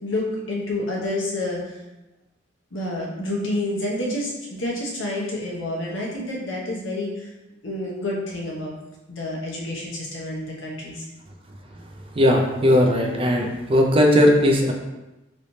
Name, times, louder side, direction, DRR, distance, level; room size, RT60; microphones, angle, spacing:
voice 1, 0.0-1.8 2.7-7.3 7.6-8.7 9.1-11.1, left 1 dB, 90° left, -3 dB, 0.9 m, -29 dB
voice 2, 12.2-14.7, equal, 30° right, 1 dB, 0.4 m, -18 dB
3.2 x 3.0 x 2.7 m, 1.0 s
head